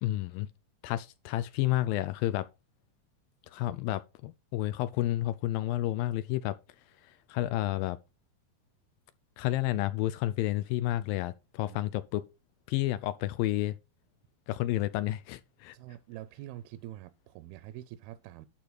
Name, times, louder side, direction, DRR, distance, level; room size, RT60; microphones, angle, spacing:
voice 1, 0.0-0.5 0.8-2.5 3.5-6.6 7.0-8.0 9.4-12.2 12.7-13.7 14.5-15.8, left 15 dB, 80° left, 2.1 m, -30 dB
voice 2, 15.7-18.5, right 14 dB, 80° right, 2.4 m, -45 dB
11.5 x 4.1 x 6.0 m
omnidirectional pair, 4.5 m